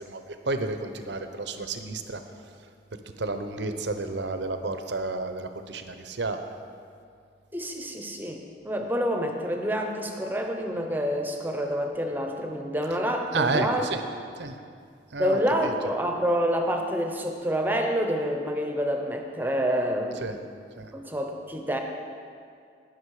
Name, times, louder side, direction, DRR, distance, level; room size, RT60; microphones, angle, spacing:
voice 1, 0.0-2.2 3.2-6.4 13.3-14.0 14.4-14.6 15.1-15.9 20.1-20.4 20.8-20.9, right 3 dB, 80° right, 7 dB, 0.8 m, -31 dB
voice 2, 7.5-13.9 15.2-20.4 20.9-21.8, equal, 10° right, 3 dB, 0.9 m, -28 dB
19.0 x 6.3 x 4.9 m, 2.3 s
head